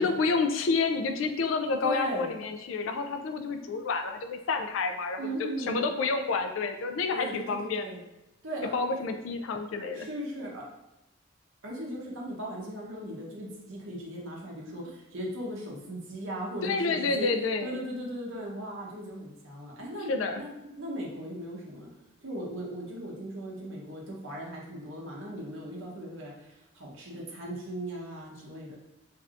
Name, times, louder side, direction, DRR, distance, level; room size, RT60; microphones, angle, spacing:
voice 1, 0.0-7.9 8.7-10.1 16.6-17.8 20.1-20.4, left 4 dB, 80° left, 6 dB, 0.3 m, -29 dB
voice 2, 1.8-2.3 5.2-5.8 7.1-8.0 8.4-8.8 9.9-10.6 11.6-17.3 17.6-20.5 20.8-21.9 22.2-28.8, right 1 dB, 80° right, -3 dB, 0.8 m, -38 dB
3.2 x 2.6 x 2.4 m, 0.94 s
head